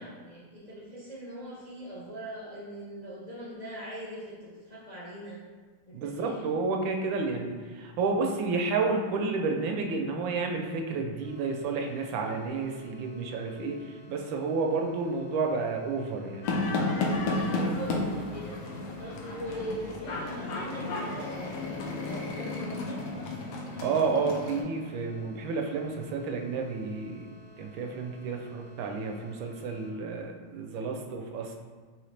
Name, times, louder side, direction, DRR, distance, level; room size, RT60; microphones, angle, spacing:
voice 1, 0.0-5.4 5.9-6.5 17.2-23.1, right 1 dB, 65° left, -8 dB, 0.4 m, -41 dB
voice 2, 5.9-16.6 23.8-31.6, right 4 dB, 80° right, 3 dB, 1.3 m, -31 dB
sound 1, 11.2-29.9, left 2 dB, 60° right, 0.9 m, -56 dB
sound 2, 16.4-24.6, left 2 dB, 85° left, 1.4 m, -32 dB
4.8 x 3.0 x 3.2 m, 1.5 s
omnidirectional pair, 2.1 m